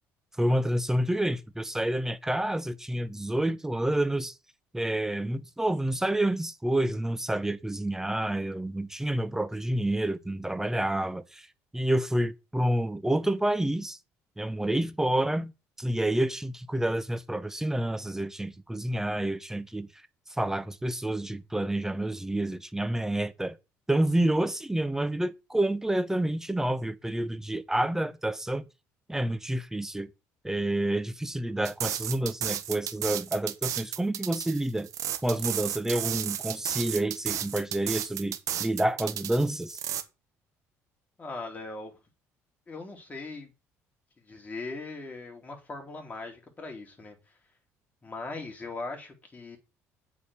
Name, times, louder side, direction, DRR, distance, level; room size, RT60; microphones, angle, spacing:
voice 1, 0.4-4.3 4.7-11.5 11.7-14.0 14.4-15.5 15.8-19.9 20.4-23.6 23.9-28.7 29.1-30.1 30.4-34.9 35.2-39.8, right 1 dB, 5° right, 1.0 m, -28 dB
sound 1, 31.6-40.0, right 11 dB, 65° right, 1.3 m, -33 dB
voice 2, 41.2-42.0 42.7-43.5 44.2-47.4 48.0-49.6, left 3 dB, 25° left, 3.9 m, -40 dB
8.2 x 4.9 x 7.2 m
supercardioid pair, 80°, 6 cm